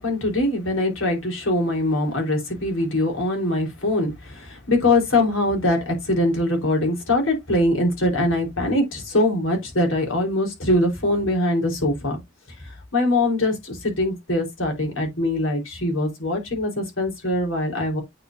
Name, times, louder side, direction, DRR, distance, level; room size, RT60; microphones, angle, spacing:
voice 1, 0.0-12.2 12.6-18.0, left 1 dB, 85° left, 4.2 m, -22 dB
9.2 x 5.3 x 2.7 m
head